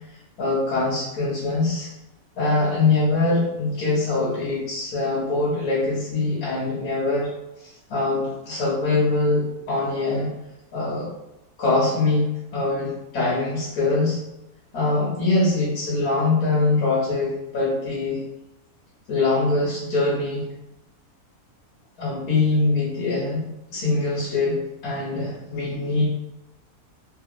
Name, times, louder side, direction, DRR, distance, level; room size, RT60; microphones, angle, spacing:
voice 1, 0.4-1.9 2.4-7.3 7.6-10.3 10.7-11.1 11.6-12.2 12.5-14.2 14.7-18.2 19.1-20.4 22.0-24.6 24.8-26.0, left 3 dB, 75° left, -7 dB, 1.5 m, -23 dB
3.5 x 2.4 x 3.0 m, 0.91 s
omnidirectional pair, 1.6 m